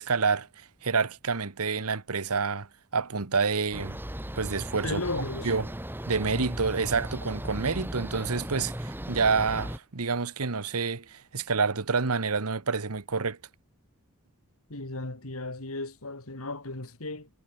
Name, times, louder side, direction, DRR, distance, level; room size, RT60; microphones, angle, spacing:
voice 1, 0.0-2.7 2.9-4.0 4.4-5.7 6.1-13.4, right 4 dB, 90° right, 1.3 m, -28 dB
sound 1, 3.7-9.8, equal, 10° right, 2.4 m, -36 dB
voice 2, 4.8-5.5 14.7-17.3, left 2 dB, 75° left, 3.3 m, -35 dB
head